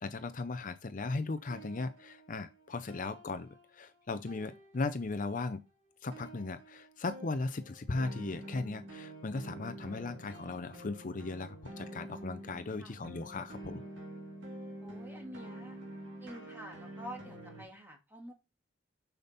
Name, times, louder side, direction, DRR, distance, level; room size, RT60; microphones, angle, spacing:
voice 1, 0.0-5.6 6.0-13.8, left 3 dB, 40° left, 0.5 m, -37 dB
sound 1, 1.4-4.0 4.3-5.3 6.1-17.6, right 1 dB, 65° right, 2.4 m, -48 dB
voice 2, 14.8-15.8 16.2-18.3, equal, 10° right, 1.6 m, -48 dB
6.9 x 5.9 x 4.0 m
head